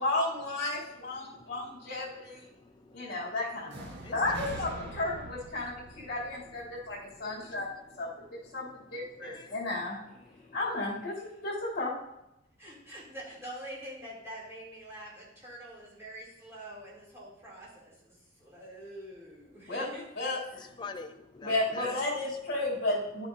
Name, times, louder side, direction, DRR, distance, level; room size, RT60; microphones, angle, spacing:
voice 1, 0.0-2.4 2.9-7.7 8.0-10.0 10.5-11.9 19.7-19.9 20.2-20.7 21.4-23.3, left 2 dB, 55° left, -9 dB, 2.7 m, -33 dB
voice 2, 1.2-3.4 3.9-4.6 5.5-10.6 20.5-22.6, left 4 dB, 20° left, 6 dB, 0.4 m, -49 dB
sound 1, 3.7-7.6, right 1 dB, 60° right, 1.5 m, -44 dB
voice 3, 12.6-20.0, equal, 15° right, -7 dB, 2.9 m, -45 dB
11.0 x 7.0 x 2.7 m, 0.85 s
head